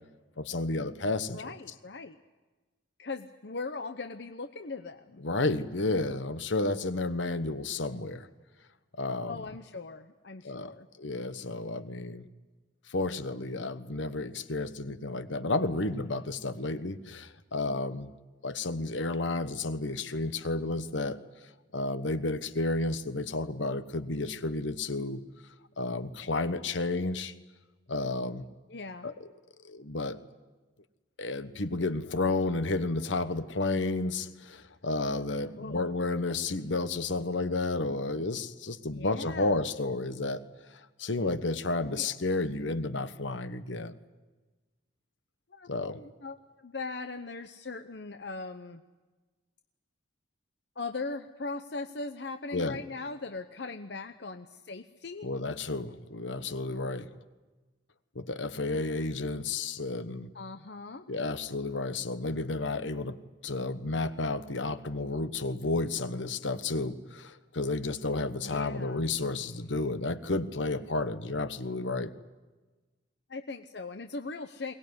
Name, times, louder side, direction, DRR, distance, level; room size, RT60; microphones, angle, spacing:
voice 1, 0.4-1.4 5.2-8.3 9.0-9.4 10.4-10.7 11.0-12.3 12.9-18.1 18.4-21.2 21.7-25.2 25.8-27.3 27.9-28.5 29.0-29.1 29.6-30.2 31.2-40.4 41.0-44.0 45.7-46.0 52.5-52.8 55.2-57.1 58.1-60.3 61.1-63.2 63.4-72.1, left 2 dB, 75° left, 12 dB, 1.3 m, -31 dB
voice 2, 1.3-2.2 3.0-5.2 9.3-10.9 28.7-29.1 35.6-35.9 38.9-39.7 41.9-42.1 45.5-48.8 50.8-55.3 60.3-61.1 68.4-69.1 73.3-74.7, left 3 dB, 60° left, 8 dB, 0.9 m, -39 dB
22.5 x 19.0 x 9.6 m, 1.2 s
head